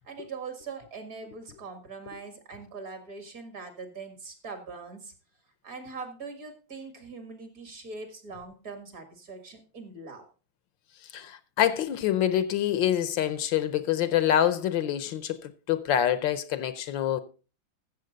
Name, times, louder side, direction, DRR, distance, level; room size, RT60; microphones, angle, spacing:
voice 1, 0.0-5.1 5.6-10.3, right 4 dB, 45° right, 2.2 m, -42 dB
voice 2, 11.1-17.2, left 10 dB, 75° left, 1.4 m, -26 dB
14.0 x 7.1 x 3.9 m
omnidirectional pair, 2.2 m